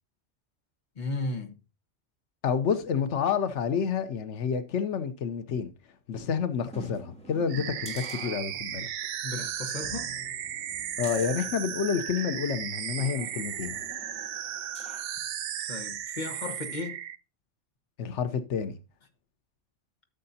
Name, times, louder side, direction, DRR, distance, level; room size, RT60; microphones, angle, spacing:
voice 1, 0.9-1.5 9.2-10.1 15.7-17.0, left 3 dB, 40° left, 1.5 m, -35 dB
voice 2, 2.4-5.7 6.1-8.9 11.0-13.8 18.0-18.8, left 7 dB, 90° left, 1.1 m, -29 dB
sound 1, 6.7-8.9 9.3-9.4 9.8-12.3 13.0-15.2 15.6-15.7, equal, 5° left, 2.9 m, -47 dB
sound 2, 7.5-17.2, right 10 dB, 65° right, 0.7 m, -35 dB
14.0 x 6.7 x 2.7 m
omnidirectional pair, 1.2 m